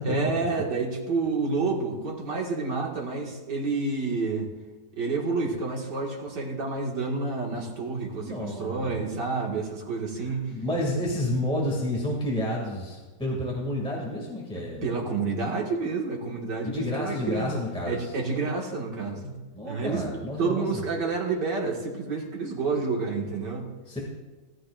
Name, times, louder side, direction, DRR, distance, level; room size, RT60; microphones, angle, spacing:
voice 1, 0.0-4.5 5.0-10.5 14.5-19.4 19.6-23.7, right 4 dB, 70° right, -1 dB, 2.6 m, -29 dB
voice 2, 8.1-8.9 10.2-15.0 15.4-15.5 16.6-18.1 19.5-20.8 23.9-24.0, left 1 dB, 5° left, -3 dB, 2.1 m, -30 dB
19.0 x 13.0 x 2.5 m, 1.3 s
omnidirectional pair, 2.0 m